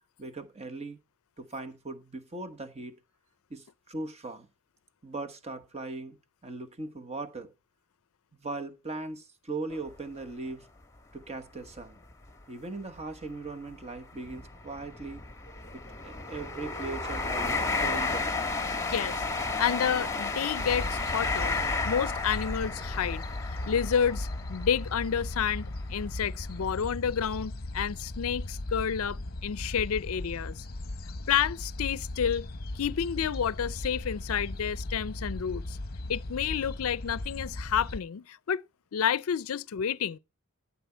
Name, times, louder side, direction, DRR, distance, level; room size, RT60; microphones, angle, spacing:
voice 1, 0.2-1.0 1.4-2.9 3.5-4.5 5.0-6.2 6.4-7.5 8.3-10.7 11.1-12.0 12.5-15.2 15.7-18.4, right 3 dB, 30° right, 1.2 m, -39 dB
sound 1, 9.7-9.9 10.5-10.6 11.7-11.8 12.1-12.3 13.0-25.7 26.2-26.4, left 3 dB, 15° left, 1.3 m, -33 dB
voice 2, 18.9-19.2 19.6-21.6 21.9-23.3 23.7-30.6 31.3-32.5 32.8-35.8 36.1-38.6 38.9-40.2, left 8 dB, 70° left, 0.5 m, -30 dB
sound 2, 20.5-38.0, left 2 dB, 45° left, 0.8 m, -37 dB
13.5 x 7.3 x 4.5 m
head